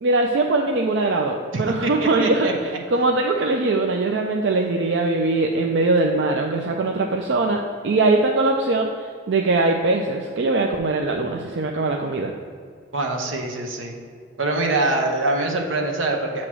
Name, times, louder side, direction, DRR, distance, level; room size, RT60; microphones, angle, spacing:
voice 1, 0.0-12.3, right 2 dB, 65° right, 2 dB, 0.4 m, -21 dB
voice 2, 1.5-2.5 12.9-14.0 14.4-16.5, right 2 dB, 85° right, 1 dB, 0.9 m, -24 dB
7.6 x 3.0 x 6.1 m, 2.1 s
head